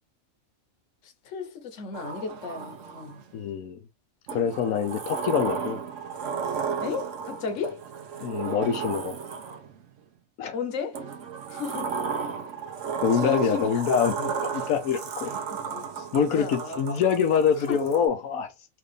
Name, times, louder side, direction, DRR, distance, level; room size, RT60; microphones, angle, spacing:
voice 1, 1.0-3.2 6.8-7.8 10.5-11.0 11.5-12.0 13.1-13.9 15.5-17.0 17.7-17.8, left 5 dB, 65° left, 1.2 m, -35 dB
Sliding door, 1.9-3.3 4.3-9.8 10.9-18.0, right 6 dB, 65° right, 1.1 m, -34 dB
voice 2, 3.3-3.8 4.3-5.8 8.2-9.1 10.4-10.5 13.0-15.3 16.1-18.5, left 7 dB, 85° left, 1.2 m, -25 dB
4.7 x 2.5 x 3.2 m
omnidirectional pair, 1.4 m